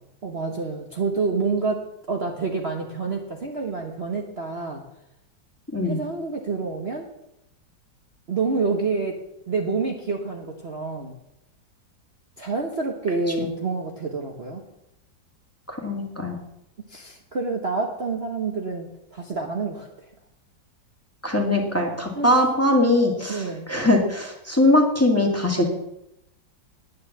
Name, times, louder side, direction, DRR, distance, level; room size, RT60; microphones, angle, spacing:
voice 1, 0.2-4.8 5.8-7.1 8.3-9.2 9.5-11.1 12.4-14.6 16.9-19.9 22.1-22.3 23.3-23.7, right 4 dB, 40° right, 1 dB, 1.3 m, -28 dB
voice 2, 15.7-16.4 21.2-25.7, left 1 dB, 10° left, 0 dB, 1.9 m, -21 dB
10.5 x 9.6 x 7.2 m, 0.83 s
omnidirectional pair, 2.0 m